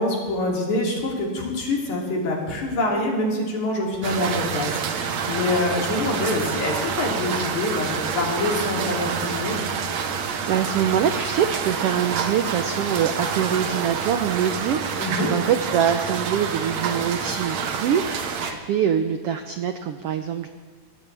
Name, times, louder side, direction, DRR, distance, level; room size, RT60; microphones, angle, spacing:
voice 1, 0.0-9.6 15.0-15.3, left 2 dB, 70° left, -2 dB, 4.4 m, -25 dB
sound 1, 4.0-18.5, right 6 dB, 65° right, 2.2 m, -28 dB
voice 2, 10.5-20.5, right 8 dB, 85° right, 8 dB, 1.3 m, -24 dB
23.5 x 17.0 x 3.4 m, 1.5 s
omnidirectional pair, 3.6 m